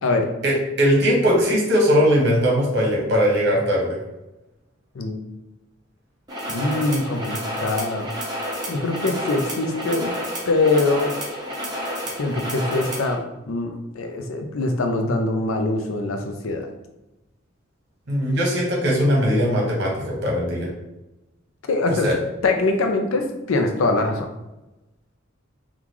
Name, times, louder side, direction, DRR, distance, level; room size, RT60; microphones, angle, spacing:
voice 1, 0.4-4.0 18.1-20.7 22.0-22.2, equal, 55° right, -3 dB, 1.1 m, -20 dB
sound 1, 6.3-13.1, equal, 20° right, 0.8 m, -30 dB
voice 2, 6.5-8.3 8.7-10.1 10.5-11.1 12.1-16.7 21.7-22.1 22.4-24.3, left 2 dB, 90° left, 5 dB, 0.5 m, -23 dB
3.7 x 2.3 x 3.0 m, 0.98 s
head